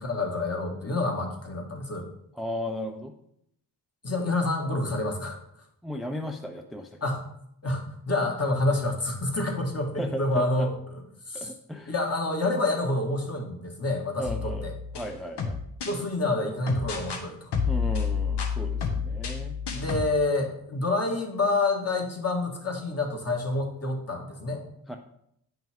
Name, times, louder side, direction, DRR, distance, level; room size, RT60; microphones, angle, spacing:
voice 1, 0.0-2.1 4.0-5.6 7.0-7.2 7.6-11.0 11.3-11.5 11.8-14.7 15.8-17.5 19.7-24.6, left 2 dB, 40° left, 2 dB, 1.6 m, -28 dB
voice 2, 2.4-3.1 5.8-7.0 10.0-10.7 11.3-11.9 14.2-14.7 14.9-15.6 17.6-19.6 24.9-25.0, equal, ahead, 4 dB, 0.5 m, -35 dB
sound 1, 14.3-16.0 16.7-17.2 17.5-20.1, left 6 dB, 80° left, 1.2 m, -30 dB
8.8 x 5.8 x 3.6 m, 0.74 s
cardioid pair, 100°, 40 cm